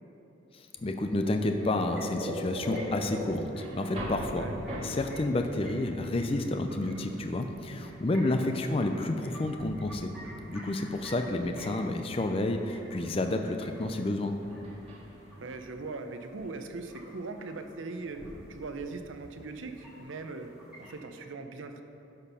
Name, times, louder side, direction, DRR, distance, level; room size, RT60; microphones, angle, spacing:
voice 1, 0.5-4.5 4.8-10.1 10.5-14.4, left 2 dB, 30° left, 6 dB, 0.4 m, -30 dB
sound 1, 0.7-10.9 14.4-16.0, equal, 30° right, 1.7 m, -44 dB
sound 2, 1.6-21.0, equal, 5° right, 1.7 m, -46 dB
voice 2, 15.4-20.5 20.8-21.8, right 3 dB, 70° right, 6 dB, 0.6 m, -40 dB
12.0 x 4.5 x 5.5 m, 2.8 s
head